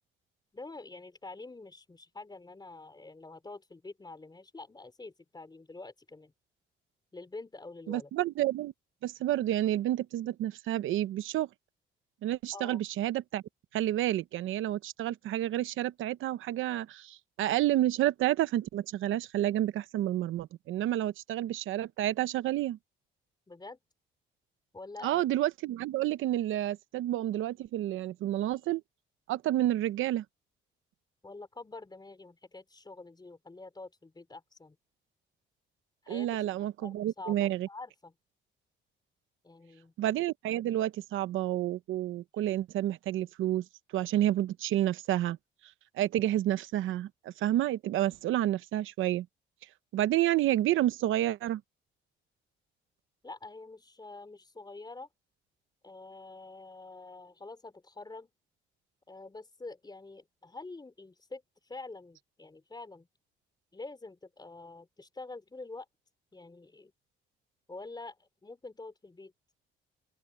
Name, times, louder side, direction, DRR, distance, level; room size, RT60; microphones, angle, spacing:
voice 1, 0.5-6.3 7.1-8.1 12.5-12.9 23.5-23.8 24.7-25.1 31.2-34.8 36.0-36.4 36.8-38.1 39.4-39.9 53.2-55.1 55.8-58.3 59.1-63.1 63.7-65.9 66.3-66.9 67.7-69.3, left 3 dB, 20° left, 4.2 m, -46 dB
voice 2, 7.9-8.7 9.0-11.5 12.2-13.4 13.7-22.8 25.0-28.8 29.3-30.2 36.1-37.7 40.0-43.6 43.9-45.4 46.0-49.3 49.9-51.6, right 13 dB, 85° right, 0.9 m, -30 dB
open air
cardioid pair, 90°, 20 cm